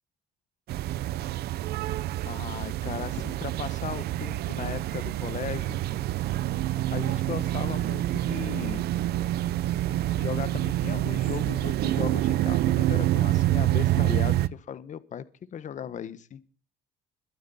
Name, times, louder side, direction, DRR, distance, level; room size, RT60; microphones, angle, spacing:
sound 1, 0.7-14.5, right 14 dB, 70° right, 0.8 m, -27 dB
voice 1, 2.2-5.8 6.9-8.9 10.1-15.2 15.5-16.4, left 8 dB, 45° left, 14 dB, 1.3 m, -37 dB
22.0 x 9.3 x 4.3 m, 0.38 s
cardioid pair, 110°, 17 cm